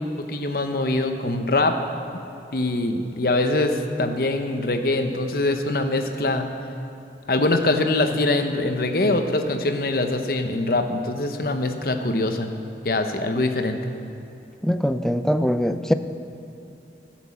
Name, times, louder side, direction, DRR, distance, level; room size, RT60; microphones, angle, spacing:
voice 1, 0.2-1.8 2.5-6.5 7.3-12.5 12.8-13.8, left 2 dB, 55° left, 6 dB, 0.8 m, -23 dB
voice 2, 14.6-15.9, equal, 5° left, 9 dB, 0.3 m, -22 dB
15.5 x 6.0 x 7.3 m, 2.9 s
head